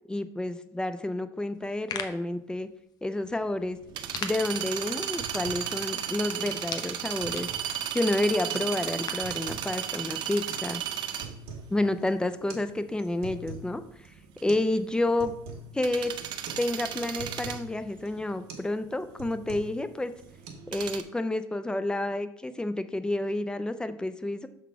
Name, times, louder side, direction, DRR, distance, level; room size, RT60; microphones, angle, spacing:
voice 1, 0.1-2.7 3.0-3.8 4.2-7.5 7.9-10.8 11.7-14.1 14.4-15.3 15.7-16.1 16.6-20.1 20.7-24.5, left 1 dB, 10° left, 11 dB, 0.5 m, -29 dB
sound 1, 1.5-9.4, left 7 dB, 45° left, 0.8 m, -43 dB
sound 2, 3.3-21.0, right 10 dB, 55° right, 0.6 m, -35 dB
sound 3, 4.5-4.7 5.0-5.7 6.0-6.1 6.4-6.6 7.0-7.8 8.4-8.7 9.0-9.7 10.5-10.6 11.0-11.7 12.0-12.1 12.5-12.7 13.0-13.7 14.0-14.1 14.5-14.7 15.0-15.7 16.0-16.2 16.5-16.6 16.9-17.7 18.0-18.2 18.5-18.7 19.0-19.8 20.1-20.5, right 4 dB, 70° right, 1.5 m, -43 dB
6.9 x 4.0 x 4.8 m, 0.74 s
supercardioid pair, 110°, 9 cm